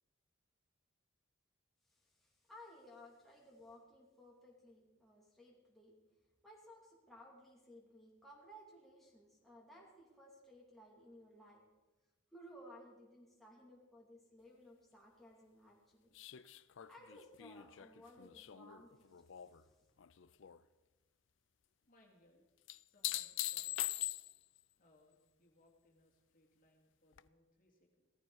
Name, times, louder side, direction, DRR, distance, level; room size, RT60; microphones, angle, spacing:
voice 1, 1.9-6.0 6.4-11.6 12.3-16.1 16.5-19.9, equal, ahead, -3 dB, 2.4 m, -59 dB
sound 1, 16.2-19.6 20.0-20.6 22.7-24.6 27.2-27.3, left 15 dB, 65° left, 0.4 m, -42 dB
voice 2, 21.9-22.4 22.8-24.1 24.8-28.1, left 1 dB, 45° left, -1 dB, 2.4 m, -70 dB
17.0 x 14.0 x 4.7 m, 1.2 s
head